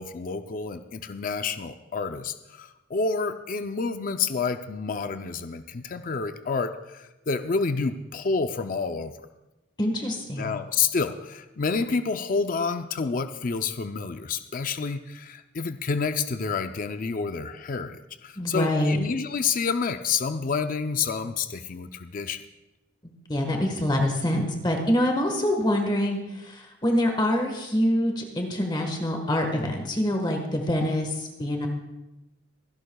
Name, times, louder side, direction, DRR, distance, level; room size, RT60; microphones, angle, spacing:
voice 1, 0.0-9.1 10.4-22.4, left 5 dB, 45° left, 8 dB, 0.5 m, -29 dB
voice 2, 9.8-10.5 18.4-19.0 23.3-31.7, left 1 dB, 25° left, 3 dB, 1.4 m, -25 dB
24.5 x 11.5 x 2.3 m, 1.0 s
head